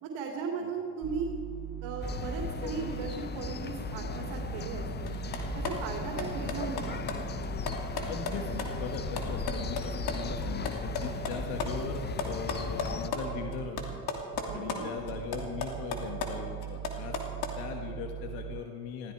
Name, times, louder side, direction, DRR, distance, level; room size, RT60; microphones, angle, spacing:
voice 1, 0.0-1.4 1.8-5.1 5.5-7.2 14.5-14.9, right 5 dB, 65° right, 0 dB, 3.0 m, -37 dB
sound 1, 1.0-18.6, right 11 dB, 40° right, 0.6 m, -41 dB
sound 2, 2.0-13.1, left 7 dB, 20° left, 0.6 m, -37 dB
sound 3, 5.1-10.1 10.4-13.2 13.5-14.8 15.1-17.6, left 5 dB, 50° left, 2.9 m, -35 dB
voice 2, 8.1-14.0 14.5-17.2 17.6-19.1, left 6 dB, 70° left, 3 dB, 1.7 m, -39 dB
19.5 x 15.5 x 4.7 m, 2.6 s
supercardioid pair, 80°, 47 cm